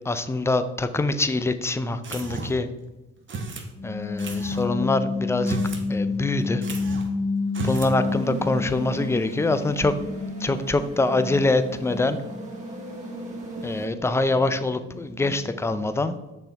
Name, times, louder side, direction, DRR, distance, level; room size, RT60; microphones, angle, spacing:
voice 1, 0.0-2.7 3.8-5.6 5.9-6.6 7.6-9.9 10.4-12.2 13.6-16.1, left 2 dB, 10° left, 11 dB, 0.4 m, -24 dB
sound 1, 2.0-2.7 3.3-3.7 4.2-4.6 5.3-5.9 6.1-6.2 6.6-7.1 7.5-8.0, right 3 dB, 40° right, 1.1 m, -33 dB
sound 2, 3.8-9.0 9.4-15.6, left 3 dB, 45° left, 1.2 m, -31 dB
sound 3, 8.0-13.9, right 1 dB, 25° right, 1.9 m, -37 dB
6.3 x 4.2 x 4.0 m, 1.0 s
cardioid pair, 90°, 30 cm